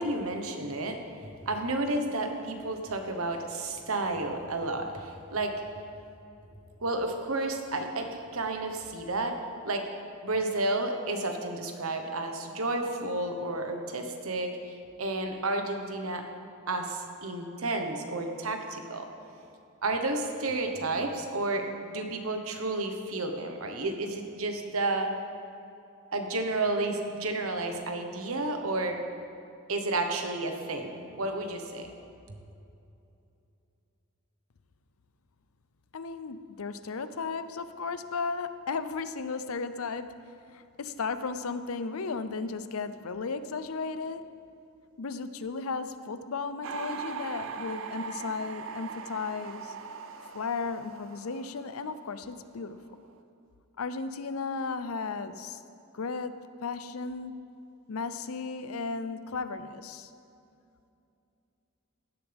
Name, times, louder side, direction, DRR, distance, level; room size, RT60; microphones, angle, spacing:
voice 1, 0.0-5.5 6.8-9.4 9.6-9.9 10.2-16.2 16.7-19.1 19.8-25.1 26.1-29.0 29.7-31.9, right 2 dB, 85° right, 4 dB, 1.3 m, -31 dB
voice 2, 35.9-44.3 45.0-49.8 50.3-52.9 53.8-55.6 55.9-57.5 57.9-60.1, left 4 dB, 85° left, 11 dB, 0.6 m, -35 dB
sound 1, 46.6-52.5 52.7-53.2, right 5 dB, 65° right, 0.6 m, -40 dB
16.0 x 11.5 x 3.5 m, 2.7 s
head